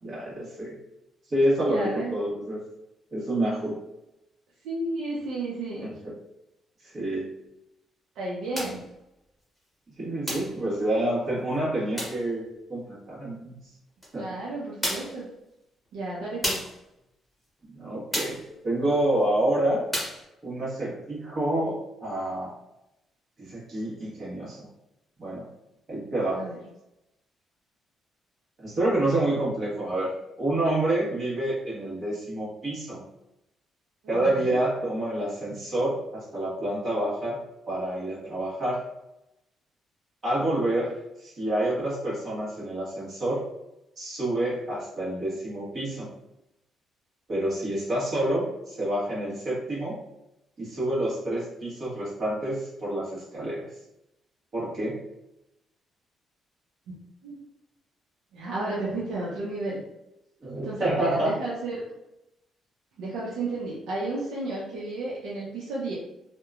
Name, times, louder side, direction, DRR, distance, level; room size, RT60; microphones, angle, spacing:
voice 1, 0.0-0.8 1.3-2.6 3.1-3.8 5.8-6.1 6.8-7.3 10.0-13.6 14.1-14.3 17.7-19.8 20.4-22.5 23.4-24.7 25.2-25.5 25.9-26.4 28.6-33.0 34.1-37.4 37.7-38.8 40.2-43.4 44.0-46.1 47.3-50.0 50.6-53.6 54.5-55.0 60.4-61.3, right 1 dB, 40° right, -7 dB, 1.2 m, -28 dB
voice 2, 1.7-2.2 4.6-5.9 8.2-8.8 14.1-15.3 15.9-16.6 26.3-26.6 34.0-34.5 56.9-57.0 57.2-57.4 58.3-59.8 60.6-61.8 63.0-65.9, right 2 dB, 90° right, -6 dB, 0.6 m, -32 dB
sound 1, 8.5-8.8 10.3-10.6 12.0-12.2 14.0-14.1 14.8-15.2 16.4-16.8 18.1-18.5 19.9-20.2, equal, 5° left, 1.0 m, -31 dB
2.8 x 2.2 x 2.4 m, 0.90 s
cardioid pair, 115°, 0 cm